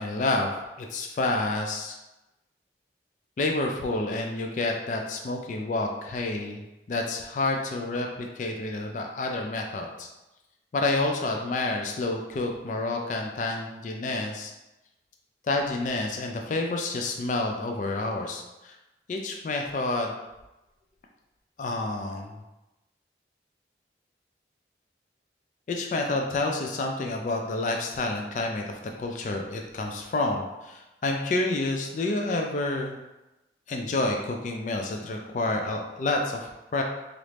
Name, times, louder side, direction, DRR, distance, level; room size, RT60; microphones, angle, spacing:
voice 1, 0.0-2.0 3.4-6.6 6.9-10.1 10.7-14.5 15.4-18.8 19.1-20.1 21.6-22.4 25.7-33.0 33.7-36.8, left 2 dB, 45° left, 2 dB, 0.3 m, -29 dB
3.0 x 2.5 x 3.2 m, 0.99 s
head